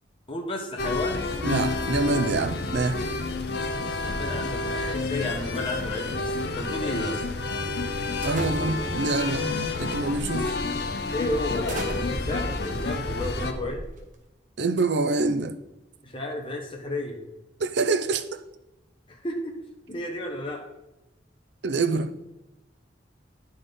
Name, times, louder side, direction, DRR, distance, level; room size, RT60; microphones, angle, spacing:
voice 1, 0.3-1.3 4.0-7.2 11.1-13.9 16.0-17.2 19.1-19.5 19.9-20.6, left 1 dB, 30° left, 1 dB, 1.2 m, -32 dB
sound 1, 0.8-13.5, left 3 dB, 55° left, 0.7 m, -29 dB
voice 2, 1.4-3.0 8.2-10.6 14.6-15.6 17.6-18.4 21.6-22.1, right 3 dB, 65° right, 8 dB, 0.5 m, -26 dB
sound 2, 8.2-9.0 9.8-10.1 10.6-10.7 11.4-14.3, right 1 dB, 45° right, 1.1 m, -38 dB
9.7 x 3.9 x 5.3 m, 0.97 s
head